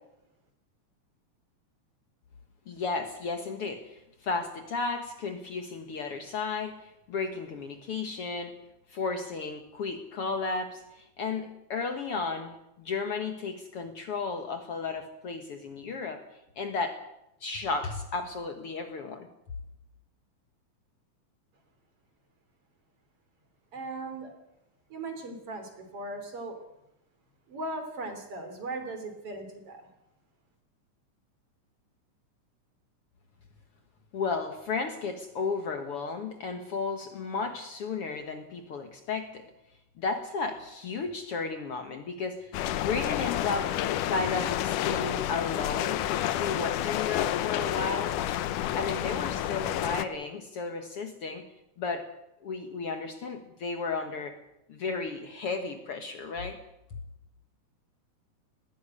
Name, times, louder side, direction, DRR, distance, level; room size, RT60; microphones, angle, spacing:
voice 1, 2.7-8.5 8.9-16.2 16.6-17.0 17.4-19.3 34.1-39.4 40.0-42.5 42.8-43.7 44.1-46.0 46.4-48.2 48.7-51.5 51.8-52.1 52.4-54.4 54.7-56.6, left 4 dB, 55° left, 7 dB, 2.0 m, -33 dB
voice 2, 23.7-24.3 24.9-26.6 27.5-29.9, right 2 dB, 45° right, 7 dB, 3.9 m, -38 dB
sound 1, 42.5-50.1, left 12 dB, 85° left, 2.5 m, -30 dB
20.0 x 15.0 x 9.7 m, 0.88 s
omnidirectional pair, 3.6 m